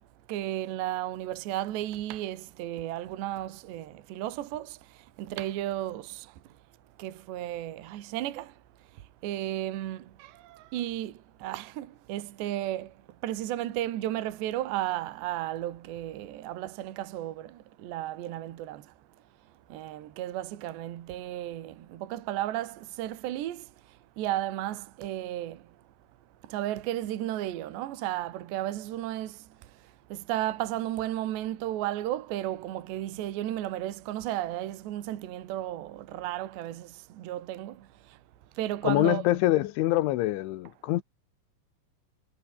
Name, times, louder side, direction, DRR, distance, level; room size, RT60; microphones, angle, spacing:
voice 1, 0.3-4.8 5.2-6.3 7.0-8.5 9.2-11.1 11.4-12.9 13.2-18.8 19.7-23.7 24.2-25.6 26.5-29.4 30.1-37.8 38.6-39.2, right 13 dB, 65° right, 3.7 m, -34 dB
voice 2, 38.8-41.0, left 16 dB, 80° left, 3.4 m, -25 dB
omnidirectional pair, 5.7 m